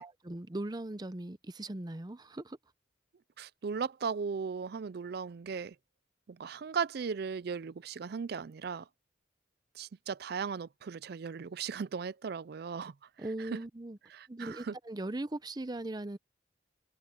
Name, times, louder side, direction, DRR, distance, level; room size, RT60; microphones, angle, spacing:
voice 1, 0.0-2.6 13.2-14.0 14.3-16.2, right 2 dB, 20° right, 0.6 m, -39 dB
voice 2, 3.4-5.7 6.3-8.9 9.8-12.9 13.4-13.6 14.1-14.8, right 6 dB, 60° right, 0.4 m, -37 dB
head